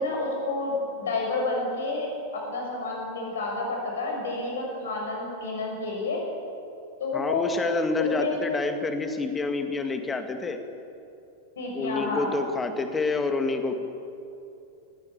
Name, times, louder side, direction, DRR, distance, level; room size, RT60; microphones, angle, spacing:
voice 1, 0.0-6.2 7.0-7.5 8.0-8.4 11.6-12.3, left 3 dB, 65° left, 0 dB, 6.6 m, -30 dB
voice 2, 7.1-10.6 11.7-13.7, left 3 dB, 15° left, 7 dB, 2.0 m, -28 dB
20.0 x 16.0 x 8.9 m, 2.7 s
figure-of-eight pair, 90°, 0 cm